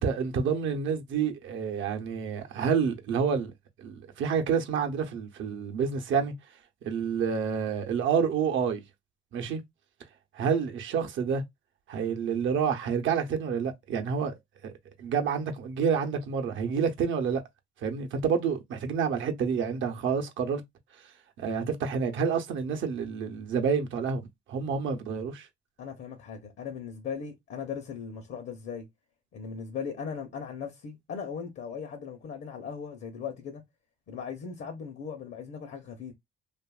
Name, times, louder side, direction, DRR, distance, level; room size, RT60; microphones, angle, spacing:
voice 1, 0.0-3.5 3.8-6.3 6.8-8.8 9.3-9.6 10.3-11.4 11.9-14.3 14.6-14.7 15.0-17.4 17.8-20.6 21.4-24.2 24.5-25.5, right 6 dB, 75° right, 0.7 m, -28 dB
voice 2, 25.8-28.9 29.3-33.6 34.1-36.1, left 6 dB, 70° left, 0.8 m, -38 dB
2.8 x 2.5 x 2.3 m
cardioid pair, 90°, 20 cm